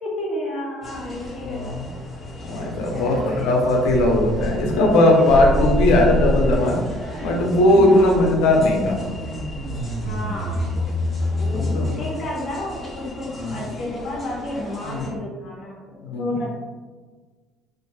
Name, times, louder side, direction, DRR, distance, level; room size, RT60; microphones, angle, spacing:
voice 1, 0.0-1.8 2.9-3.6 7.9-8.2 10.0-10.8 11.3-15.8 16.0-16.5, left 1 dB, 45° left, -4 dB, 0.6 m, -31 dB
sound 1, 0.8-15.1, left 1 dB, 15° left, 0.8 m, -37 dB
voice 2, 1.4-1.9 2.5-6.8 7.2-9.0 11.5-11.9 13.4-13.6 14.8-15.1 16.0-16.4, left 1 dB, 90° left, 1 dB, 0.5 m, -18 dB
sound 2, 3.8-4.9 5.3-11.9, left 1 dB, 85° right, 0.5 m, -26 dB
2.5 x 2.2 x 2.9 m, 1.4 s
cardioid pair, 130°, 0 cm